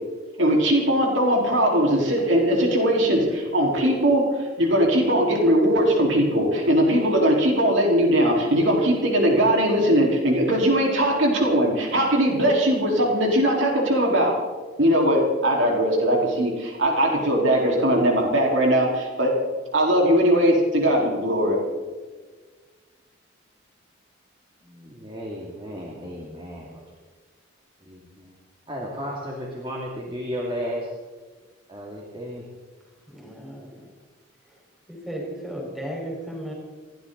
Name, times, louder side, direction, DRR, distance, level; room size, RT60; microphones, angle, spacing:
voice 1, 0.4-4.3 4.6-14.4 14.8-19.4 19.7-21.6, equal, 65° right, -1 dB, 4.3 m, -20 dB
voice 2, 24.6-26.8 27.9-28.3 28.7-30.9 31.7-32.4, equal, 25° right, -3 dB, 2.6 m, -34 dB
voice 3, 33.1-33.9 34.5-34.6 34.9-36.5, right 1 dB, ahead, -3 dB, 4.6 m, -35 dB
28.0 x 12.0 x 4.0 m, 1.4 s
head